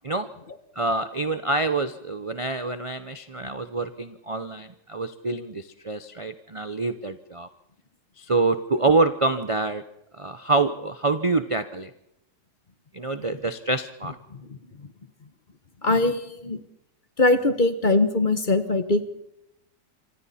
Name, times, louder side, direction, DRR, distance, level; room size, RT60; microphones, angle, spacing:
voice 1, 0.8-7.5 8.2-9.8 10.2-11.9 12.9-14.1, right 3 dB, 45° right, 10 dB, 0.4 m, -26 dB
voice 2, 14.3-14.9 15.8-16.6 17.2-19.1, left 2 dB, 30° left, 11 dB, 1.1 m, -22 dB
27.0 x 25.0 x 4.3 m, 0.82 s
omnidirectional pair, 1.8 m